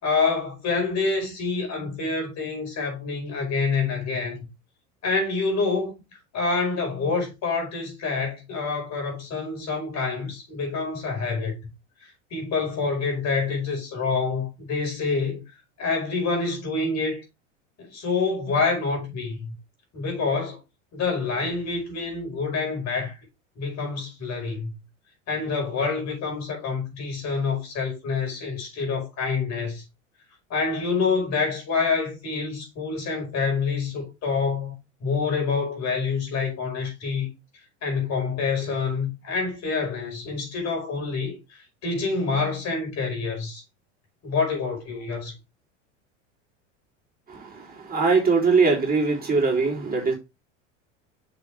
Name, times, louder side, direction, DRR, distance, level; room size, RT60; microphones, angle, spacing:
voice 1, 0.0-4.5 5.0-5.9 6.3-11.6 12.0-15.4 15.8-17.2 17.8-19.5 19.9-20.6 20.9-23.2 23.6-24.7 25.3-29.8 30.5-34.7 35.0-37.3 37.8-43.6 44.2-45.4, left 4 dB, 45° left, 5.3 m, -27 dB
voice 2, 47.9-50.1, right 4 dB, 25° right, 3.5 m, -21 dB
7.0 x 6.5 x 3.4 m
hypercardioid pair, 95°, 38 cm